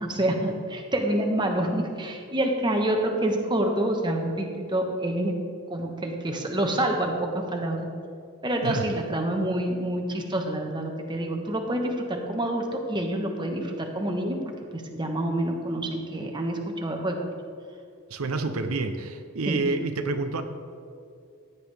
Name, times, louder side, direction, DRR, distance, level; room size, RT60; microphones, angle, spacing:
voice 1, 0.0-5.4 5.7-7.9 8.4-14.4 14.7-17.2 19.5-19.6, right 1 dB, 20° right, 2 dB, 1.2 m, -27 dB
voice 2, 8.5-8.9 18.1-20.4, right 3 dB, 80° right, 7 dB, 0.7 m, -28 dB
15.5 x 10.0 x 3.4 m, 2.4 s
head